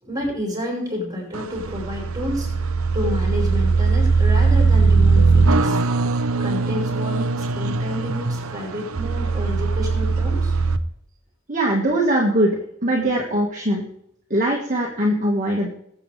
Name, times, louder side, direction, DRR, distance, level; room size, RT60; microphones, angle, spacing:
voice 1, 0.0-2.6 2.9-6.1 6.4-10.6, left 1 dB, 15° right, -3 dB, 5.4 m, -30 dB
sound 1, 1.3-10.8, right 4 dB, 70° right, 0.8 m, -20 dB
voice 2, 11.5-12.6 12.8-13.8 14.3-15.7, right 1 dB, 35° right, -2 dB, 1.9 m, -21 dB
20.5 x 8.1 x 3.5 m, 0.74 s
head